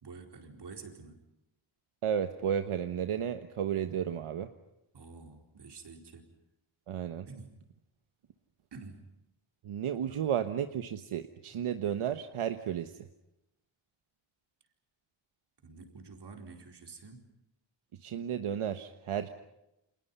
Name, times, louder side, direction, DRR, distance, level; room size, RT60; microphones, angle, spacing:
voice 1, 0.0-1.2 4.9-6.3 7.3-7.6 8.7-9.0 10.1-10.2 11.5-11.7 15.6-17.2, right 4 dB, 55° right, 4 dB, 4.4 m, -49 dB
voice 2, 2.0-4.5 6.9-7.3 9.6-12.9 18.0-19.3, right 9 dB, 80° right, 8 dB, 1.3 m, -33 dB
30.0 x 27.0 x 5.6 m, 0.89 s
wide cardioid pair, 150°, 50 cm